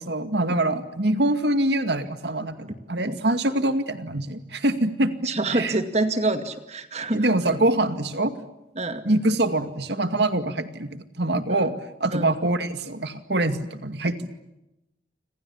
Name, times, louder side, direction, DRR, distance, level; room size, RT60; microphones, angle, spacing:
voice 1, 0.0-5.1 5.5-5.7 7.1-8.3 9.1-11.7 12.0-14.3, right 1 dB, 65° right, 9 dB, 2.3 m, -24 dB
voice 2, 5.2-7.6 8.8-9.1 11.5-11.7 12.1-12.4, right 2 dB, 35° right, 9 dB, 2.2 m, -27 dB
29.0 x 27.0 x 7.2 m, 0.92 s
head